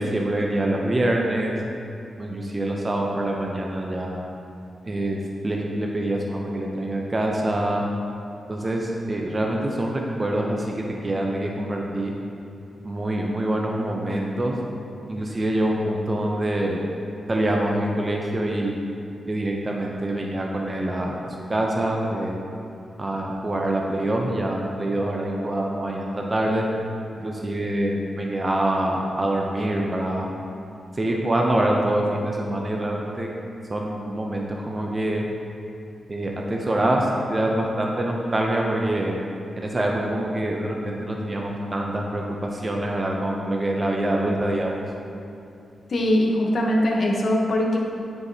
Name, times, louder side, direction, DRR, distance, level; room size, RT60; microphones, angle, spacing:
voice 1, 0.0-1.5 2.2-4.2 4.8-5.2 5.4-7.8 8.5-12.1 12.8-14.6 15.1-16.8 17.3-18.7 19.3-22.4 23.0-26.6 27.2-30.3 30.9-33.3 33.7-35.2 36.1-39.2 39.6-44.8, right 1 dB, 25° right, -1 dB, 0.5 m, -25 dB
voice 2, 45.9-47.8, left 1 dB, 50° left, -1 dB, 0.9 m, -21 dB
9.6 x 4.5 x 2.7 m, 2.6 s
wide cardioid pair, 130°, 0 cm